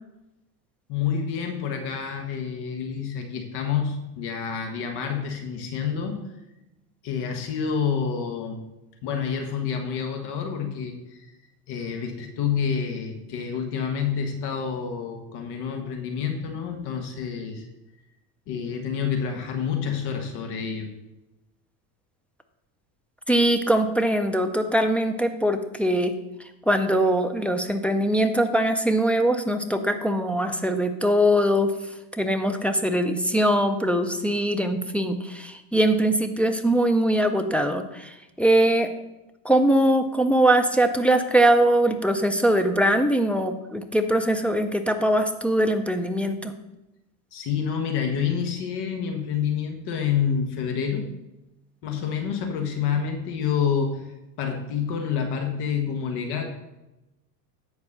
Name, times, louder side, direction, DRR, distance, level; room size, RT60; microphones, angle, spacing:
voice 1, 0.9-6.2 7.0-8.6 9.0-11.3 11.7-17.7 18.5-20.9 47.3-51.1 51.8-54.1 54.4-56.4, left 7 dB, 55° left, 4 dB, 1.5 m, -28 dB
voice 2, 23.3-26.2 26.7-31.7 32.1-38.9 39.4-46.5, right 1 dB, 5° left, 5 dB, 0.3 m, -22 dB
9.7 x 4.6 x 6.7 m, 0.96 s
supercardioid pair, 105°, 48 cm